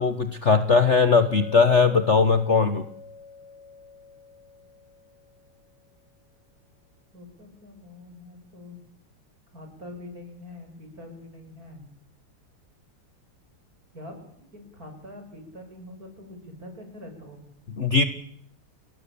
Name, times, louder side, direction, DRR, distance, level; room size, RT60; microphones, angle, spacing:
voice 1, 0.0-2.8 17.8-18.0, left 5 dB, 35° left, 10 dB, 1.4 m, -19 dB
Chink clink, 1.2-5.6, left 4 dB, 85° left, 9.0 m, -44 dB
voice 2, 7.1-8.8 9.5-11.9 13.9-14.2 14.5-17.5, left 1 dB, 40° right, 5 dB, 7.9 m, -44 dB
30.0 x 20.5 x 8.6 m, 0.67 s
omnidirectional pair, 2.3 m